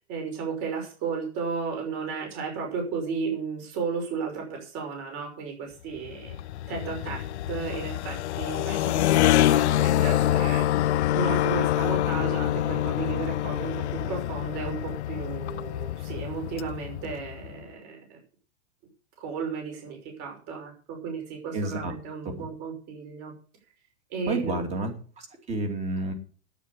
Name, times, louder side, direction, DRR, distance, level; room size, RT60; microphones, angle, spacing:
voice 1, 0.1-6.4 6.7-18.2 19.2-23.3 24.1-24.6, right 5 dB, 35° right, 2 dB, 5.9 m, -34 dB
sound 1, 6.0-17.6, left 13 dB, 80° left, 0.7 m, -26 dB
voice 2, 21.5-21.9 24.3-24.9 25.2-26.1, right 2 dB, 20° right, 5 dB, 2.7 m, -30 dB
9.9 x 9.0 x 8.3 m, 0.40 s
supercardioid pair, 165°, 33 cm